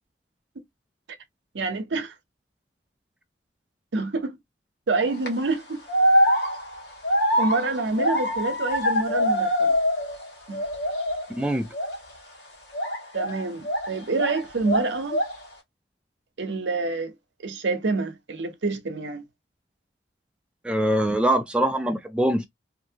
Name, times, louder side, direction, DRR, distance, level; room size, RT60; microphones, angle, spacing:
voice 1, 1.5-2.1 3.9-4.4 4.9-5.8 7.4-9.7 10.5-10.6 13.1-15.2 16.4-17.1 17.4-19.3, right 3 dB, 80° right, 0.7 m, -27 dB
sound 1, 4.9-5.3 5.9-10.2 10.5-11.3 11.7-12.0 12.7-14.4 14.6-15.4, equal, 70° left, 1.3 m, -24 dB
voice 2, 11.3-11.7 20.6-22.5, right 1 dB, 5° right, 0.3 m, -23 dB
2.7 x 2.6 x 2.7 m
head